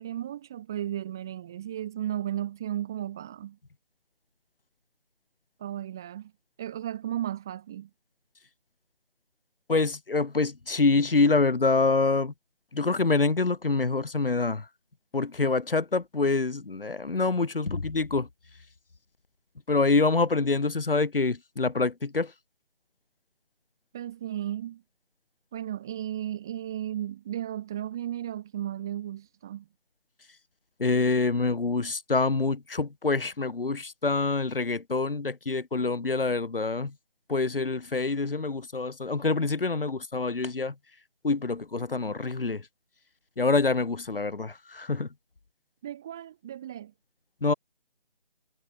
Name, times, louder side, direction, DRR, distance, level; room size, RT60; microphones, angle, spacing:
voice 1, 0.0-3.6 5.6-6.3 6.6-7.9 23.9-24.8 25.5-29.7 45.8-46.9, right 11 dB, 5° right, 0.8 m, -34 dB
voice 2, 9.7-12.3 12.7-14.7 15.1-18.3 19.7-22.3 30.8-36.9 37.3-40.7 41.2-42.6 43.4-45.1 47.4-47.5, left 3 dB, 65° left, 1.9 m, -26 dB
figure-of-eight pair, 160°, 30 cm